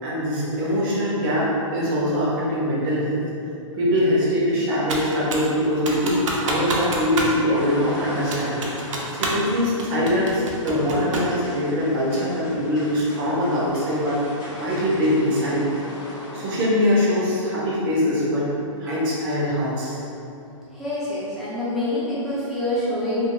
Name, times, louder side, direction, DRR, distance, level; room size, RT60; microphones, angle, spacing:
voice 1, 0.0-3.3 3.7-8.6 9.1-14.2 14.6-15.6 16.3-18.5 18.8-20.0, equal, 40° right, -7 dB, 0.9 m, -22 dB
Computer keyboard, 4.9-5.5 5.9-7.4 7.6-7.7 8.3-9.5 9.8-11.4, right 2 dB, 65° right, 0.5 m, -27 dB
sound 1, 7.5-16.6, equal, 40° left, 1.0 m, -38 dB
voice 2, 20.7-23.3, left 1 dB, ahead, -11 dB, 0.3 m, -26 dB
2.8 x 2.6 x 2.2 m, 2.7 s
hypercardioid pair, 140°, 17 cm